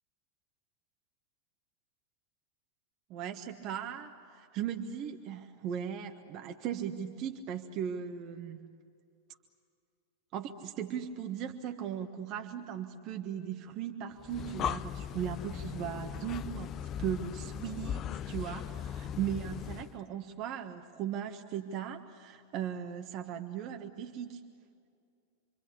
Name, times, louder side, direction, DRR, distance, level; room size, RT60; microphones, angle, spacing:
voice 1, 3.1-8.6 10.3-24.4, right 9 dB, 40° right, 5 dB, 1.4 m, -38 dB
Breathing, 14.2-20.0, left 9 dB, 30° left, 0.7 m, -38 dB
28.5 x 24.5 x 8.5 m, 2.3 s
figure-of-eight pair, 90°, 0 cm